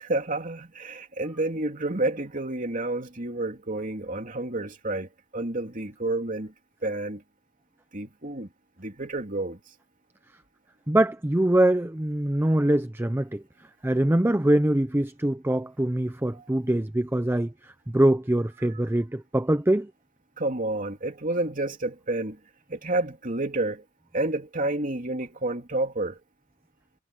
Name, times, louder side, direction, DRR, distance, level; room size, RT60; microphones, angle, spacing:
voice 1, 0.0-6.5 6.8-7.2 7.9-8.5 8.8-9.6 16.3-16.4 20.4-22.4 22.7-23.8 24.1-26.2, right 2 dB, 40° right, 2.9 m, -30 dB
voice 2, 10.9-13.4 13.8-17.5 17.9-19.9, right 1 dB, 10° right, 0.5 m, -23 dB
head